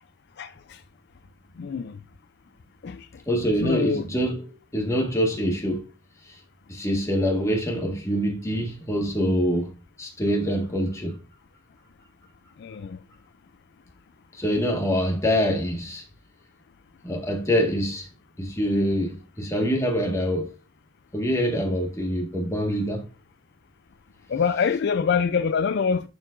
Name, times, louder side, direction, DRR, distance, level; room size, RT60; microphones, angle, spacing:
voice 1, 1.6-1.9 2.8-3.0 3.6-4.0 12.6-13.0 24.3-26.1, left 6 dB, 60° left, 0.4 m, -24 dB
voice 2, 3.3-5.8 6.2-6.4 6.7-9.7 10.0-11.2 14.3-16.0 17.0-18.1 18.4-20.5 21.1-23.1, equal, 15° left, 1.6 m, -25 dB
10.5 x 4.7 x 2.5 m
head